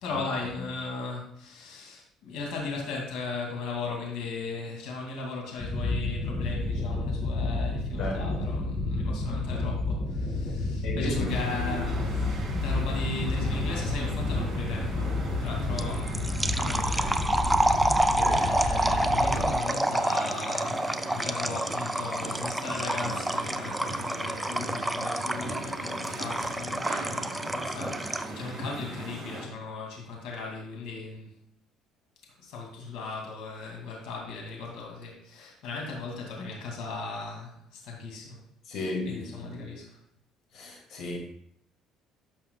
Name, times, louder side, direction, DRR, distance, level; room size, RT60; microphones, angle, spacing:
voice 1, 0.0-16.2 16.5-31.3 32.4-38.4 38.7-40.0, left 4 dB, 80° left, -1 dB, 2.4 m, -37 dB
sound 1, 5.6-19.5, left 2 dB, 30° left, 2.4 m, -30 dB
voice 2, 8.0-8.6 10.8-11.3 15.7-15.8 18.2-18.4 38.7-39.5 40.5-41.2, left 2 dB, 60° left, 1 dB, 2.2 m, -34 dB
sound 2, 11.3-29.5, right 1 dB, 30° right, 2.7 m, -39 dB
sound 3, 15.8-28.4, right 1 dB, 5° right, 0.4 m, -28 dB
12.0 x 5.8 x 2.3 m, 0.66 s
cardioid pair, 120°, 0 cm